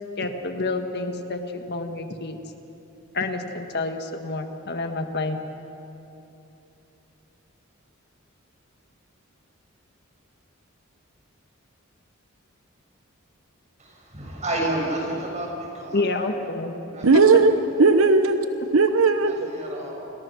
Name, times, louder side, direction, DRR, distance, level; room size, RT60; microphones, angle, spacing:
voice 1, 0.2-2.4 3.1-5.4 15.9-16.7 17.1-17.9, left 3 dB, 55° left, 6 dB, 1.6 m, -28 dB
voice 2, 13.8-16.3 16.9-17.1 19.2-20.1, right 1 dB, 35° right, -1 dB, 6.8 m, -30 dB
voice 3, 17.0-19.4, right 4 dB, 75° right, 8 dB, 0.9 m, -17 dB
30.0 x 22.0 x 6.3 m, 3.0 s
head